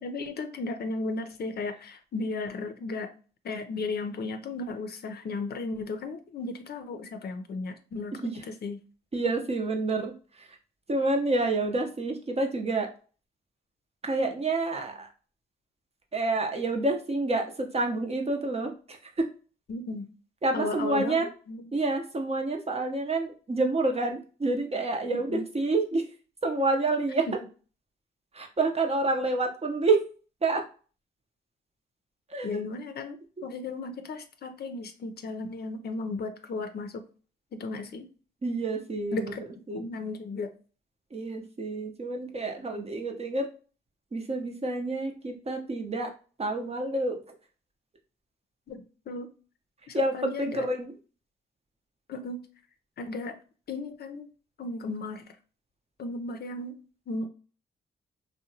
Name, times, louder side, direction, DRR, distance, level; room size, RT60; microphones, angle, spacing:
voice 1, 0.0-3.1 3.4-8.8 19.7-20.1 20.5-21.7 25.1-25.4 32.4-33.2 33.4-37.0 37.5-38.1 39.1-39.4 39.7-40.5 48.7-49.3 49.9-50.7 52.1-52.5 53.0-53.4 53.7-54.3 54.6-55.2 56.0-56.8 57.1-57.3, left 3 dB, 55° left, 8 dB, 0.5 m, -35 dB
voice 2, 9.1-10.5 10.9-12.9 14.0-15.1 16.1-19.3 20.4-21.3 21.7-26.1 26.4-27.3 28.3-30.0 30.4-30.6 32.3-32.7 33.4-33.5 38.4-39.3 39.7-39.8 41.1-43.5 44.1-46.1 46.4-47.2 49.9-50.9, right 2 dB, 30° right, 3 dB, 0.7 m, -28 dB
2.7 x 2.1 x 2.7 m, 0.37 s
supercardioid pair, 50°, 20 cm